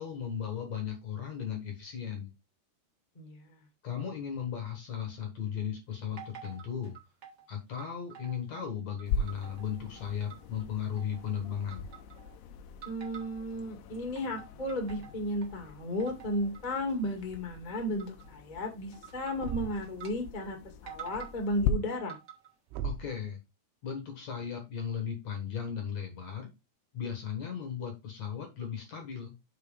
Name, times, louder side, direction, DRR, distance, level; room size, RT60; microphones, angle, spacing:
voice 1, 0.0-2.3 3.8-6.9 7.5-11.9 22.8-23.4 23.8-26.5 26.9-29.3, left 8 dB, 60° left, 4 dB, 2.0 m, -36 dB
voice 2, 3.1-3.6 12.8-20.6 20.8-22.1, left 1 dB, 30° left, 2 dB, 0.8 m, -34 dB
sound 1, 6.2-7.5 7.8-8.7 9.0-10.6 11.0-11.4 11.7-12.4 12.8-13.6 13.9-15.6 16.0-16.6 16.9-17.2 18.0-18.3 18.9-20.1 20.4-20.5 20.9-21.4 21.9-22.5, right 8 dB, 55° right, 1.1 m, -49 dB
sound 2, 9.1-21.7, left 6 dB, 85° left, 2.9 m, -40 dB
Thump thud, 19.4-20.0 22.7-23.2, right 6 dB, 90° right, 2.8 m, -37 dB
6.9 x 4.0 x 5.1 m, 0.23 s
omnidirectional pair, 4.7 m